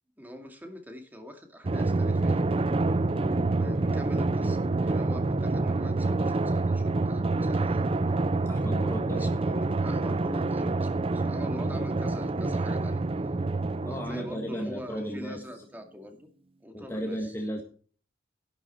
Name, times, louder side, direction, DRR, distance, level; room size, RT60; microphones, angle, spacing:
voice 1, 0.2-2.4 3.4-8.1 9.1-13.0 13.8-16.3 16.6-17.3, left 1 dB, 10° right, 4 dB, 2.2 m, -43 dB
Drum, 1.6-14.7, right 2 dB, 30° right, 0.5 m, -27 dB
voice 2, 8.5-9.5 13.8-15.4 16.7-17.6, equal, 15° left, 1 dB, 1.6 m, -35 dB
12.0 x 10.5 x 4.4 m, 0.42 s
head